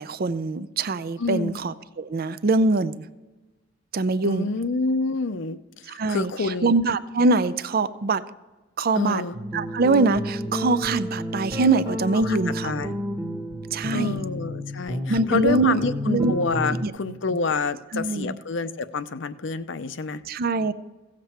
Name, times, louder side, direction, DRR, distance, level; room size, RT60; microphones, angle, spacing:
voice 1, 0.0-3.0 3.9-4.5 5.9-6.3 6.6-8.2 8.8-9.2 9.5-12.8 13.7-14.2 15.1-16.3 16.8-16.9 17.9-18.4 20.3-20.7, right 3 dB, 50° right, 14 dB, 0.5 m, -23 dB
voice 2, 1.2-1.6 4.2-5.6 5.8-6.7 8.9-9.4 12.2-12.4 12.6-12.9 13.9-20.2, left 4 dB, 65° left, 12 dB, 0.6 m, -28 dB
sound 1, 9.3-16.9, equal, 20° right, 1.2 m, -31 dB
16.5 x 7.5 x 4.3 m, 1.2 s
head